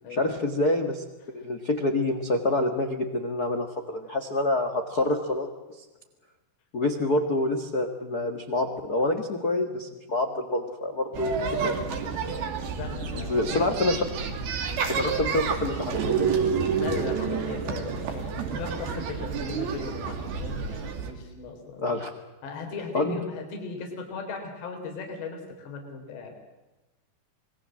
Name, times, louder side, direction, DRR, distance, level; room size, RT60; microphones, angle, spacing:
voice 1, 0.1-1.0 1.3-5.5 6.7-12.0 13.0-14.0 14.9-16.5 21.8-22.1 22.9-23.2, left 2 dB, 60° left, 5 dB, 0.9 m, -27 dB
sound 1, 11.1-21.1, right 6 dB, 65° right, 4.3 m, -29 dB
voice 2, 12.7-13.7 16.8-21.9 22.4-26.3, left 4 dB, 85° left, 4 dB, 5.8 m, -38 dB
27.5 x 21.0 x 7.6 m, 1.1 s
omnidirectional pair, 4.8 m